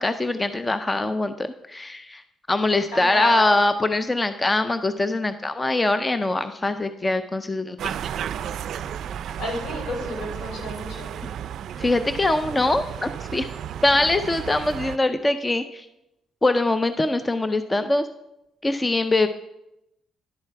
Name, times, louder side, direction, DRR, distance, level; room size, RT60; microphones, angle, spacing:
voice 1, 0.0-2.2 2.5-7.9 11.2-11.3 11.8-13.5 13.8-15.9 16.4-18.1 18.6-19.3, left 2 dB, 20° left, 11 dB, 0.5 m, -23 dB
voice 2, 2.9-3.6 9.4-11.1, left 1 dB, 80° left, -1 dB, 3.4 m, -31 dB
sound 1, 7.8-15.0, right 9 dB, 70° right, 0.3 m, -33 dB
10.5 x 4.4 x 5.8 m, 0.86 s
cardioid pair, 90°, 0 cm